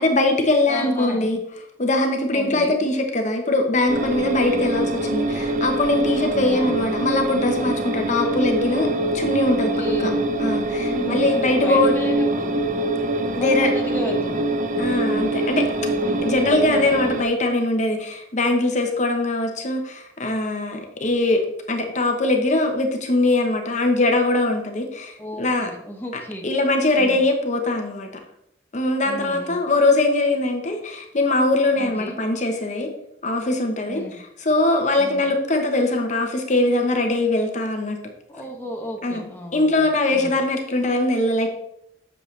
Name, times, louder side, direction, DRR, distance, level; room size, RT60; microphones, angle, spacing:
voice 1, 0.0-1.4 1.8-8.9 9.1-9.7 10.0-11.9 13.3-13.7 14.8-15.8 16.2-21.4 21.7-25.7 26.4-28.1 28.7-32.9 33.2-34.0 34.4-38.0 39.0-39.2 39.5-41.5, left 2 dB, 40° left, 4 dB, 1.0 m, -21 dB
voice 2, 0.7-1.3 2.3-2.8 6.3-6.8 9.4-10.2 10.8-12.5 13.4-14.5 16.0-16.3 25.2-26.5 27.0-27.2 29.0-29.6 31.7-32.2 33.9-34.2 35.0-35.3 38.3-39.9 40.1-40.4, equal, 10° left, 0 dB, 1.0 m, -33 dB
sound 1, 3.9-17.2, right 2 dB, 45° right, 0.6 m, -24 dB
8.3 x 6.6 x 3.2 m, 0.78 s
head